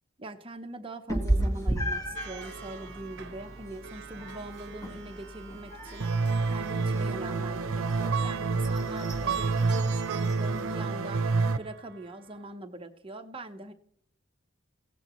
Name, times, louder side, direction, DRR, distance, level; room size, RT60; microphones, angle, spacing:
voice 1, 0.2-6.1 6.5-11.2 11.5-13.7, right 2 dB, 25° right, 6 dB, 0.9 m, -42 dB
Meow, 1.1-10.7, right 1 dB, 15° left, 1.6 m, -35 dB
Plucked string instrument, 2.2-12.5, right 9 dB, 55° right, 0.9 m, -42 dB
sound 1, 6.0-11.6, right 4 dB, 80° right, 0.7 m, -28 dB
16.5 x 15.0 x 3.1 m, 0.73 s
head